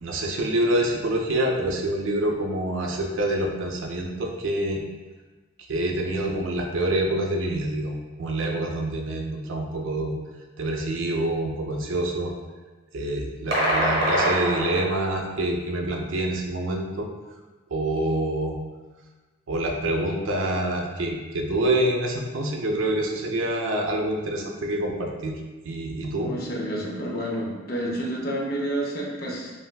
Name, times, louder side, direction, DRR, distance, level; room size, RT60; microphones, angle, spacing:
voice 1, 0.0-4.8 5.6-10.1 10.6-12.3 12.9-17.1 17.7-18.6 19.5-25.4 25.6-26.3, right 1 dB, 80° right, 1 dB, 0.5 m, -26 dB
sound 1, 13.5-15.2, right 1 dB, 55° right, 0.9 m, -24 dB
voice 2, 26.2-29.5, right 1 dB, 50° left, -2 dB, 0.6 m, -29 dB
3.4 x 2.5 x 2.3 m, 1.3 s
head